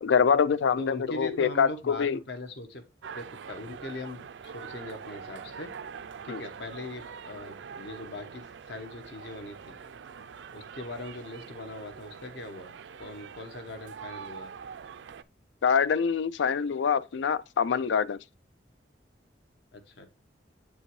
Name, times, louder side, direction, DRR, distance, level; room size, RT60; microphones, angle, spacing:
voice 1, 0.0-2.2 6.3-6.4 15.6-18.2, left 6 dB, 85° left, 0.4 m, -25 dB
voice 2, 0.8-2.8 3.1-5.7 6.2-9.8 10.5-12.7 13.0-14.5 19.7-20.1, left 2 dB, 70° left, 1.2 m, -40 dB
sound 1, 3.0-15.2, right 6 dB, 80° right, 0.4 m, -44 dB
8.1 x 5.4 x 3.1 m
head